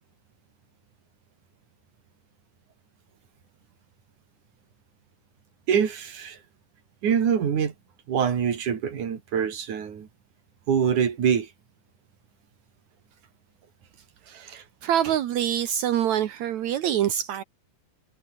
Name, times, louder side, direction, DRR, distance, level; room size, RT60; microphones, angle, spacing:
voice 1, 5.7-6.4 7.0-7.7 8.1-10.1 10.7-11.5, right 7 dB, 50° right, 3.7 m, -24 dB
voice 2, 14.3-17.4, right 10 dB, 80° right, 1.6 m, -26 dB
omnidirectional pair, 5.1 m